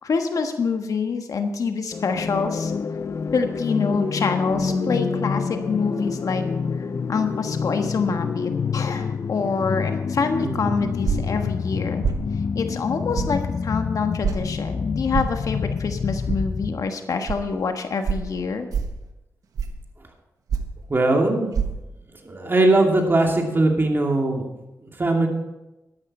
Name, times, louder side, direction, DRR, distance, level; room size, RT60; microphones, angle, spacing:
voice 1, 0.0-2.7 3.3-6.4 6.8-12.1 12.5-18.7, left 5 dB, 70° left, 6 dB, 1.4 m, -26 dB
sound 1, 1.9-16.9, left 5 dB, 55° left, 0.5 m, -28 dB
Bass guitar, 4.5-10.8, left 3 dB, 90° left, 3.6 m, -36 dB
voice 2, 10.4-10.7 20.9-21.5 22.2-24.5 25.0-25.3, right 2 dB, 40° right, 1 dB, 2.7 m, -20 dB
sound 2, 11.0-11.4 12.0-12.2 13.2-13.3 14.2-14.4 15.1-15.4 16.3-16.4 17.3-17.4 18.0-18.3 18.7-19.0 19.6-19.8 20.5-20.8 21.5-21.7, right 7 dB, 85° right, 1.2 m, -25 dB
12.5 x 11.5 x 4.3 m, 0.98 s
cardioid pair, 65°, 6 cm